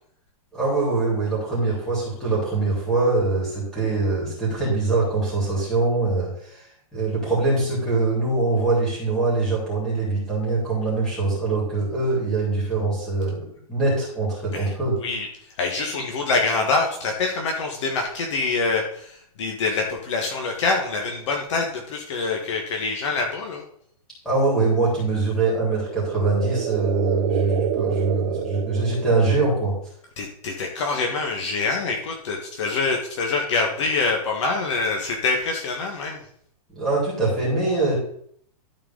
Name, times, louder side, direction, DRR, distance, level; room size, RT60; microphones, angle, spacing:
voice 1, 0.5-6.6 6.9-13.4 13.7-14.9 24.2-29.7 36.7-37.9, right 3 dB, ahead, -7 dB, 3.6 m, -23 dB
voice 2, 15.6-23.6 30.2-36.2, left 3 dB, 50° left, 2 dB, 1.4 m, -25 dB
sound 1, 25.7-29.6, right 9 dB, 25° right, 0.5 m, -28 dB
12.5 x 4.7 x 3.8 m, 0.64 s
hypercardioid pair, 175°, 20 cm